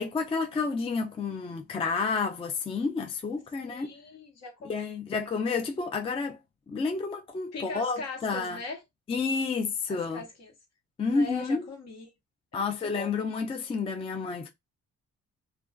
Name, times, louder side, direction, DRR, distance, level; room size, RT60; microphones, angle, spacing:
voice 1, 0.0-3.9 4.6-6.4 6.7-8.6 9.1-10.2 11.0-11.6 12.5-14.5, left 4 dB, 20° left, 0.3 m, -30 dB
voice 2, 3.7-5.0 7.5-8.8 9.9-10.5 11.0-12.1 12.5-13.1, left 2 dB, 60° left, 1.1 m, -40 dB
2.4 x 2.2 x 2.3 m
cardioid pair, 90°, 30 cm